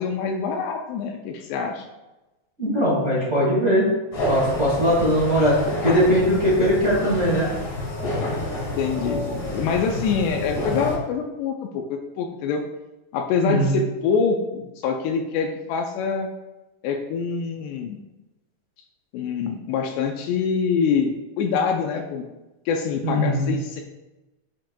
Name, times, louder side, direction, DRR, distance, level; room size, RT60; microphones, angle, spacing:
voice 1, 0.0-1.9 8.8-12.6 13.1-16.3 16.8-18.0 19.1-22.3 22.7-23.8, left 5 dB, 80° left, 4 dB, 2.7 m, -25 dB
voice 2, 2.6-3.9 4.3-7.5 13.4-13.7 23.0-23.5, equal, 45° right, -7 dB, 0.9 m, -20 dB
sound 1, 4.1-11.0, left 1 dB, 50° left, 2.8 m, -29 dB
7.6 x 7.4 x 2.2 m, 1.0 s
omnidirectional pair, 4.9 m